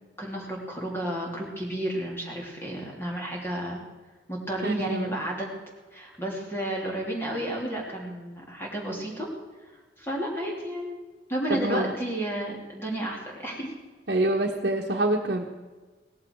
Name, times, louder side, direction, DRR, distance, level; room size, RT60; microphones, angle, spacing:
voice 1, 0.2-3.8 4.3-5.5 5.9-9.3 10.0-11.0 11.3-13.7, right 1 dB, 15° left, -2 dB, 3.1 m, -32 dB
voice 2, 4.6-5.2 11.5-11.9 14.1-15.5, right 1 dB, 60° right, -2 dB, 1.4 m, -26 dB
17.5 x 14.5 x 4.7 m, 1.3 s
head